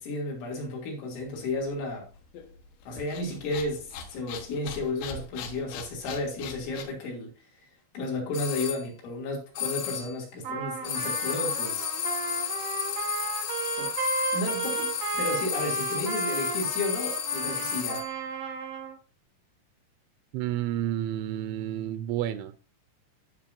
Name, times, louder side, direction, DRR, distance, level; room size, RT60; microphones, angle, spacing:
voice 1, 0.0-2.1 2.9-7.3 8.0-11.9 13.8-13.9 14.3-18.1, left 2 dB, 90° left, 5.2 m, -33 dB
sound 1, 1.2-6.8, left 6 dB, 75° left, 3.4 m, -42 dB
sound 2, 8.3-8.8 9.5-10.2 10.8-18.2, left 9 dB, 60° left, 2.2 m, -32 dB
Trumpet, 10.4-19.0, right 5 dB, 65° right, 1.6 m, -34 dB
voice 2, 20.3-22.6, right 12 dB, 85° right, 2.9 m, -30 dB
15.0 x 6.1 x 2.6 m
omnidirectional pair, 5.3 m